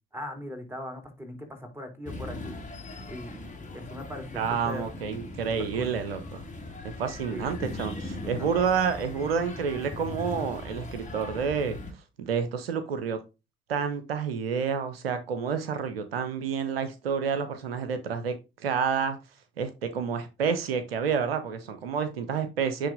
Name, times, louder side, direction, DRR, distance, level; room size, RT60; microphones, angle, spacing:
voice 1, 0.1-2.6 3.1-3.5 3.7-4.9 5.6-5.9 7.3-7.7 8.4-8.5, left 1 dB, 10° right, 3.3 m, -40 dB
sound 1, 2.1-11.9, left 2 dB, 25° left, 2.0 m, -39 dB
voice 2, 4.3-6.4 7.0-11.8 12.2-13.2 13.7-18.3 18.6-19.2 19.6-22.9, right 6 dB, 85° right, 0.7 m, -29 dB
9.7 x 3.3 x 3.8 m
figure-of-eight pair, 45°, 29 cm